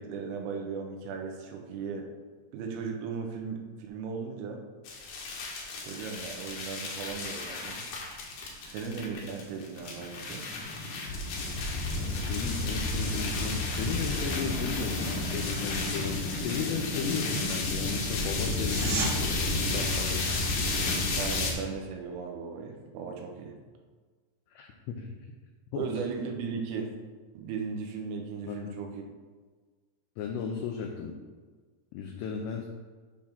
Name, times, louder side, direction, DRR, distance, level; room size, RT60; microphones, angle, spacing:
voice 1, 0.0-2.1 2.5-4.6 5.8-7.8 8.7-10.5 21.2-23.6 25.8-26.9 27.4-29.0, right 5 dB, 90° right, 2 dB, 3.6 m, -37 dB
sound 1, 4.9-21.5, left 2 dB, 70° left, 2.0 m, -32 dB
voice 2, 12.3-20.3 24.5-25.1 25.7-25.9 28.5-28.8 30.2-31.1 31.9-32.7, left 6 dB, 85° left, 2 dB, 2.4 m, -35 dB
sound 2, 18.5-19.1 30.5-30.6, right 5 dB, 75° right, 3.4 m, -33 dB
9.3 x 3.6 x 5.9 m, 1.4 s
omnidirectional pair, 5.7 m